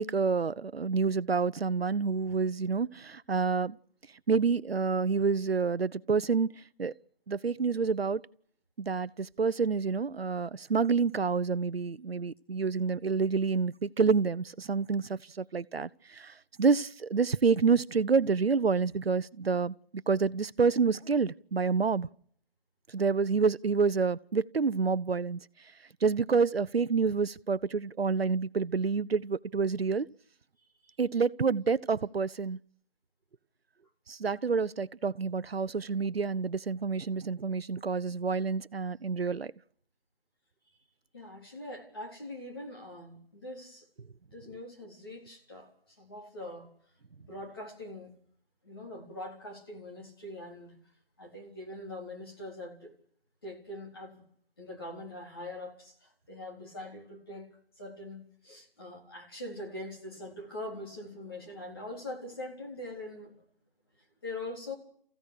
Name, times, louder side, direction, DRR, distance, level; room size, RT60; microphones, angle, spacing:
voice 1, 0.0-3.8 4.3-6.5 6.8-6.9 7.3-8.2 8.8-19.7 20.1-22.1 22.9-25.4 26.0-30.1 31.0-32.6 34.1-39.5, right 5 dB, 85° right, 0.9 m, -28 dB
voice 2, 41.1-43.9 44.3-45.7 46.0-46.7 47.2-48.1 48.6-50.7 51.2-52.9 53.4-54.2 54.6-57.5 57.8-63.4 64.2-64.7, left 1 dB, 25° left, 3.9 m, -43 dB
28.5 x 15.5 x 6.6 m
figure-of-eight pair, 180°, 29 cm